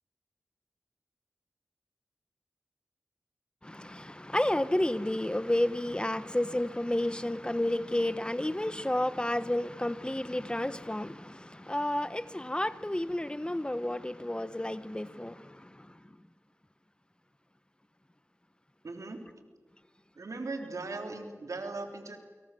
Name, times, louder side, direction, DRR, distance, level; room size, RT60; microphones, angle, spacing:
voice 1, 3.6-15.3, left 1 dB, 15° left, 15 dB, 1.1 m, -31 dB
voice 2, 18.8-19.2 20.2-22.2, right 3 dB, 80° right, 4 dB, 3.7 m, -38 dB
29.0 x 24.0 x 7.7 m, 1.5 s
wide cardioid pair, 50°, 5 cm